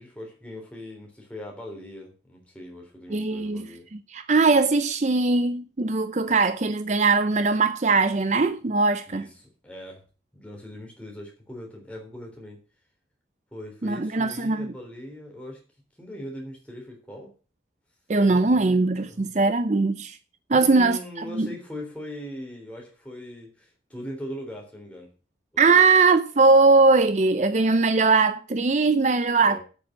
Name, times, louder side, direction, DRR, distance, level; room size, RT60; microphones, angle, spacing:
voice 1, 0.0-3.9 9.1-10.0 10.3-12.6 13.5-15.6 16.0-17.3 18.2-19.3 20.5-25.1 25.7-25.9 29.4-29.6, left 1 dB, 5° left, 3.6 m, -40 dB
voice 2, 3.1-9.3 13.8-14.7 18.1-20.2 20.5-21.5 25.6-29.6, right 3 dB, 40° right, 0.5 m, -20 dB
8.5 x 7.0 x 7.2 m
head